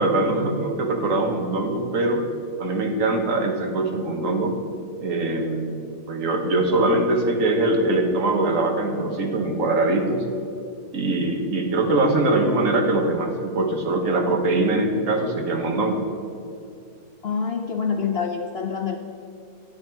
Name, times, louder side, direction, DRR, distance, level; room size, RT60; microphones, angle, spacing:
voice 1, 0.0-2.2 2.6-4.6 5.0-5.8 6.1-10.3 10.9-16.0, right 2 dB, 60° right, 3 dB, 1.4 m, -22 dB
voice 2, 17.2-19.0, left 6 dB, 55° left, 3 dB, 0.7 m, -26 dB
10.5 x 9.6 x 4.5 m, 2.6 s
omnidirectional pair, 1.6 m